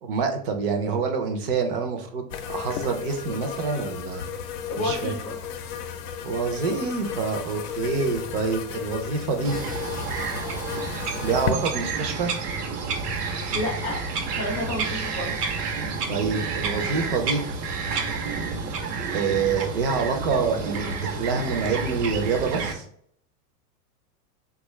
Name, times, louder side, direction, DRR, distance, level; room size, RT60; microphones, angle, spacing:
voice 1, 0.0-4.3 4.8-5.1 6.2-9.6 11.2-12.3 16.1-17.4 19.1-22.9, right 5 dB, 40° right, 5 dB, 0.4 m, -26 dB
sound 1, 2.3-11.5, left 8 dB, 70° left, 0.6 m, -34 dB
voice 2, 4.7-5.4 13.5-14.0 14.4-15.5, left 2 dB, 30° left, -2 dB, 0.4 m, -30 dB
Bird vocalization bird call bird song, 9.4-22.7, right 4 dB, 75° right, 0.8 m, -30 dB
3.3 x 2.3 x 3.0 m, 0.65 s
supercardioid pair, 155°, 47 cm